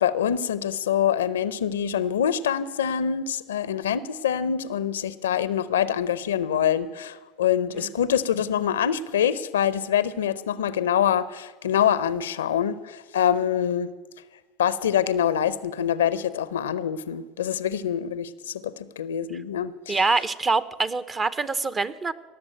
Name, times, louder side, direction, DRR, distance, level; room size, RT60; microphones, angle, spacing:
voice 1, 0.0-13.9 14.6-20.0, left 9 dB, 85° left, 0.6 m, -25 dB
voice 2, 19.9-22.1, right 3 dB, 30° right, 0.8 m, -25 dB
18.0 x 7.1 x 8.9 m
hypercardioid pair, 75°, 0 cm